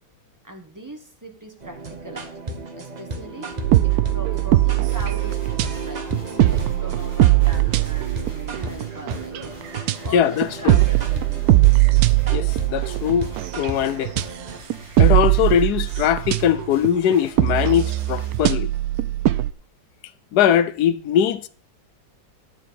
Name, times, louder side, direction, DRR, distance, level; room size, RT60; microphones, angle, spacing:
voice 1, 0.4-3.5 3.8-9.6 10.0-11.4, right 1 dB, 10° right, 1.3 m, -40 dB
sound 1, 1.6-14.6, right 2 dB, 35° right, 0.7 m, -34 dB
sound 2, 3.6-9.4 9.7-10.0 10.4-14.2 14.7-19.5, right 16 dB, 85° right, 0.8 m, -20 dB
sound 3, 4.9-18.4, right 1 dB, 65° right, 6.2 m, -45 dB
voice 2, 10.1-10.8 12.3-14.1 15.0-18.7 20.3-21.5, left 9 dB, 70° left, 1.0 m, -21 dB
10.5 x 4.5 x 7.1 m
omnidirectional pair, 2.2 m